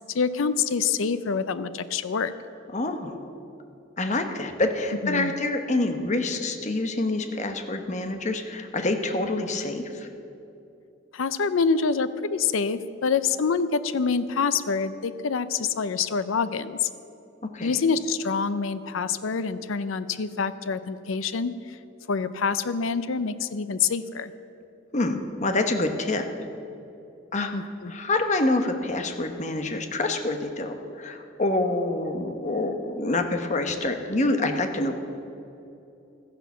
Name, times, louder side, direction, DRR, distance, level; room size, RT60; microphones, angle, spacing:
voice 1, 0.1-2.3 5.0-5.3 11.1-16.9 17.6-21.8 22.1-24.3 27.5-27.9, left 5 dB, 75° left, 13 dB, 0.5 m, -26 dB
voice 2, 2.7-3.3 4.0-10.1 17.4-17.7 24.9-26.3 27.3-35.0, left 2 dB, 35° left, 6 dB, 1.0 m, -27 dB
13.5 x 10.5 x 7.1 m, 2.8 s
head